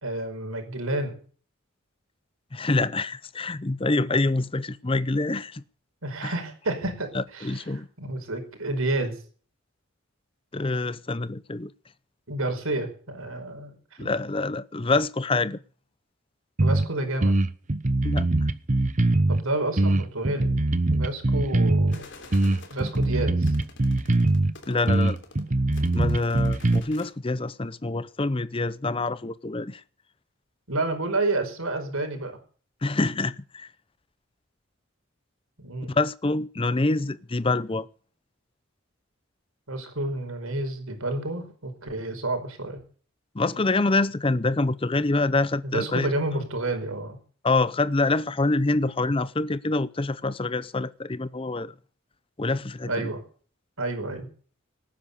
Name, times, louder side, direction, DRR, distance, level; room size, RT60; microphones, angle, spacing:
voice 1, 0.0-1.1 6.0-9.2 12.3-13.7 14.0-14.1 16.6-17.3 19.3-20.6 20.9-22.1 22.7-23.5 30.7-32.4 35.6-35.9 39.7-42.8 45.7-47.2 52.8-53.2 53.8-54.3, right 2 dB, 85° right, 4.9 m, -30 dB
voice 2, 2.5-5.6 6.2-6.3 7.1-7.9 10.5-11.7 14.0-15.6 18.0-18.5 24.7-25.2 25.9-29.8 32.8-33.7 35.9-37.9 43.3-46.1 47.4-51.7 52.4-53.1, left 2 dB, 25° left, 0.6 m, -26 dB
sound 1, 16.6-16.9 17.2-19.4 19.8-22.0 22.3-24.5 24.9-26.8, right 2 dB, 35° right, 0.8 m, -22 dB
sound 2, 21.9-27.1, left 3 dB, 60° left, 3.3 m, -48 dB
18.5 x 10.0 x 6.8 m
head